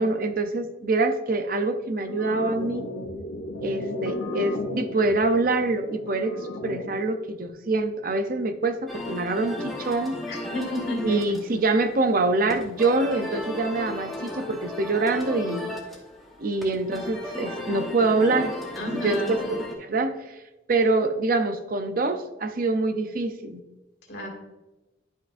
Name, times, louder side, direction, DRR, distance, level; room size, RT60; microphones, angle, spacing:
voice 1, 0.0-2.9 3.6-6.4 6.6-10.2 11.0-15.7 16.4-18.5 18.9-19.2 19.5-20.3 20.7-23.6, right 3 dB, 50° right, 8 dB, 0.6 m, -25 dB
sound 1, 2.1-7.1, left 1 dB, 85° left, 0.8 m, -34 dB
sound 2, 8.9-19.7, left 1 dB, ahead, 1.1 m, -36 dB
voice 2, 10.3-11.4 18.8-19.5 24.1-24.3, left 1 dB, 60° left, 0 dB, 2.1 m, -31 dB
11.5 x 5.6 x 2.6 m, 1.0 s
head